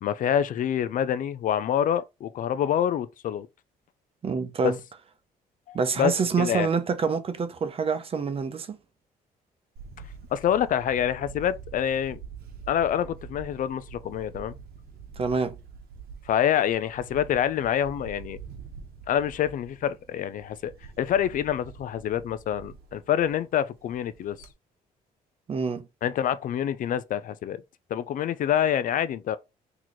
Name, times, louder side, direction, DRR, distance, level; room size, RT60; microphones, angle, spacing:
voice 1, 0.0-3.5 4.6-4.7 5.7-6.1 6.4-6.7 10.3-12.2 12.7-14.5 16.3-18.4 19.1-20.7 21.0-24.5 26.0-27.6 27.9-29.4, left 9 dB, 60° left, 0.4 m, -26 dB
voice 2, 4.2-4.8 5.7-8.8 15.2-15.5 25.5-25.9, right 5 dB, 35° right, 0.7 m, -26 dB
Camera, 9.8-24.5, right 6 dB, 80° right, 1.0 m, -46 dB
4.0 x 2.9 x 3.1 m
cardioid pair, 100°, 16 cm